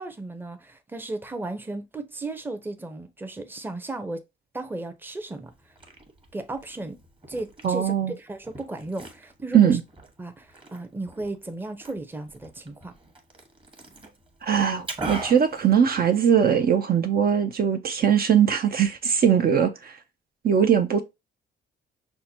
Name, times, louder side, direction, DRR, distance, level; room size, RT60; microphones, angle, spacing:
voice 1, 0.0-4.2 4.5-5.5 6.3-7.0 7.3-9.8 10.2-12.9, right 2 dB, 10° right, 0.6 m, -35 dB
Liquid, 5.5-16.5, right 2 dB, 25° right, 1.1 m, -42 dB
voice 2, 7.6-8.1 9.5-9.8 14.4-19.9 20.4-21.0, right 8 dB, 50° right, 0.5 m, -20 dB
5.6 x 2.2 x 2.7 m
cardioid pair, 90°, 21 cm